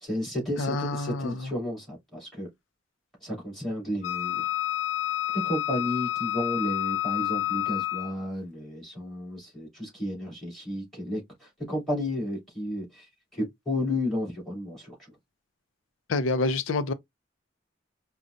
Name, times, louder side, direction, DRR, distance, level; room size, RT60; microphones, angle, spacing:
voice 1, 0.0-2.5 3.2-4.5 5.3-14.9, left 1 dB, ahead, 2.7 m, -32 dB
voice 2, 0.6-1.5 16.1-16.9, left 3 dB, 85° left, 0.5 m, -27 dB
Wind instrument woodwind instrument, 4.0-8.2, left 14 dB, 40° left, 1.2 m, -29 dB
5.0 x 2.2 x 2.5 m
head